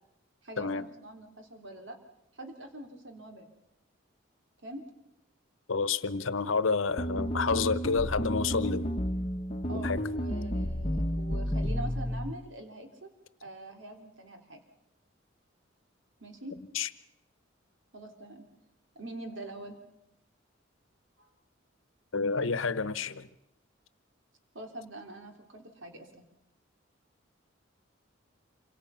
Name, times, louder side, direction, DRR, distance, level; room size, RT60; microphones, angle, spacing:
voice 1, 0.4-2.0 2.3-3.5 4.6-4.8 9.7-13.1 13.4-14.6 16.2-16.6 17.9-18.5 18.9-19.8 21.2-21.3 24.5-26.2, right 1 dB, 75° right, 3.4 m, -44 dB
voice 2, 5.7-8.9 9.7-10.0 16.7-16.9 22.1-23.3, left 4 dB, 85° left, 1.0 m, -29 dB
sound 1, 7.0-12.3, equal, 30° left, 1.3 m, -31 dB
27.0 x 25.0 x 5.7 m
head